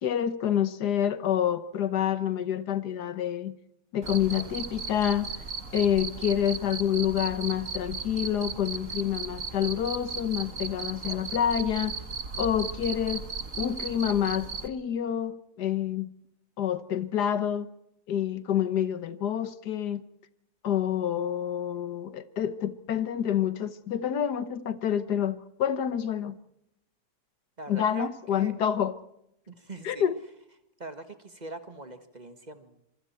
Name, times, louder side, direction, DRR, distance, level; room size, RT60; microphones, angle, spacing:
voice 1, 0.0-3.6 3.9-5.3 5.7-11.9 12.4-13.3 13.6-16.1 16.6-17.7 18.1-20.0 20.6-26.4 27.7-28.9 29.8-30.1, left 9 dB, 85° left, 1.7 m, -28 dB
Cricket, 4.0-14.7, right 5 dB, 55° right, 2.0 m, -36 dB
voice 2, 27.6-28.5 29.5-30.1 30.8-32.8, right 3 dB, 25° right, 1.7 m, -42 dB
26.0 x 24.0 x 4.5 m
omnidirectional pair, 1.7 m